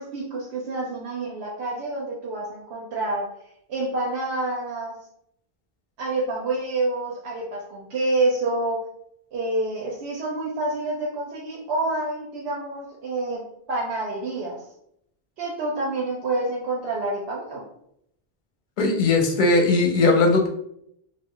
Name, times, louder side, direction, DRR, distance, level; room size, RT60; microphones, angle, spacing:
voice 1, 0.0-3.3 3.7-4.9 6.0-8.8 9.3-13.4 13.7-14.6 15.4-17.6, right 2 dB, 90° right, -3 dB, 0.9 m, -28 dB
voice 2, 18.8-20.5, left 3 dB, 55° left, 2 dB, 0.6 m, -19 dB
2.4 x 2.1 x 3.6 m, 0.73 s
omnidirectional pair, 1.0 m